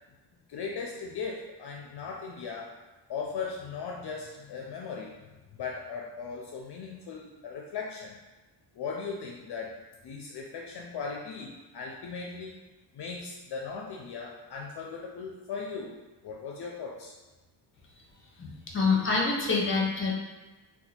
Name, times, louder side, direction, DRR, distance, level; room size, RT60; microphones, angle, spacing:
voice 1, 0.5-2.7 3.1-5.2 5.5-8.2 8.7-12.6 12.9-16.0 16.2-17.1, left 5 dB, 65° left, -1 dB, 0.5 m, -38 dB
voice 2, 18.3-20.1, left 4 dB, 30° left, -2 dB, 0.8 m, -27 dB
2.7 x 2.3 x 4.1 m, 1.2 s
wide cardioid pair, 105°, 43 cm